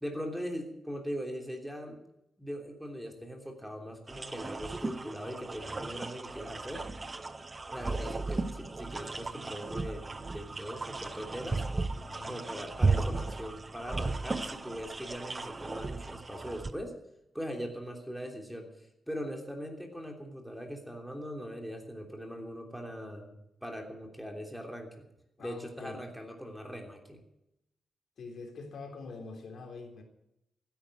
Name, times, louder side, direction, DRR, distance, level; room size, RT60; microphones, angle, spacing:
voice 1, 0.0-2.0 2.4-6.9 7.7-11.6 12.3-16.9 17.3-25.0 25.4-27.2, equal, ahead, 2 dB, 3.2 m, -41 dB
sound 1, 4.1-16.7, right 3 dB, 25° right, 0.9 m, -35 dB
voice 2, 12.1-12.5 25.4-26.0 28.2-30.0, left 4 dB, 65° left, 3 dB, 3.5 m, -44 dB
15.5 x 10.5 x 7.9 m, 0.82 s
cardioid pair, 115°, 0 cm